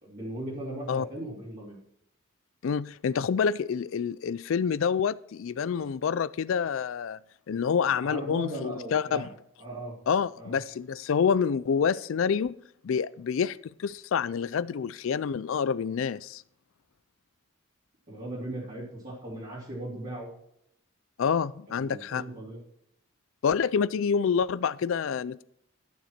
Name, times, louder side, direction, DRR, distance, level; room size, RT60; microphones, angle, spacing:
voice 1, 0.0-1.8 8.0-9.3 9.6-9.9 10.4-10.6 18.1-20.3 21.7-22.6, right 1 dB, 40° right, 3.3 m, -38 dB
voice 2, 2.6-7.2 7.5-9.3 10.1-12.5 12.8-16.4 21.2-22.2 23.4-25.4, left 6 dB, 65° left, 0.4 m, -27 dB
12.0 x 9.9 x 4.4 m
head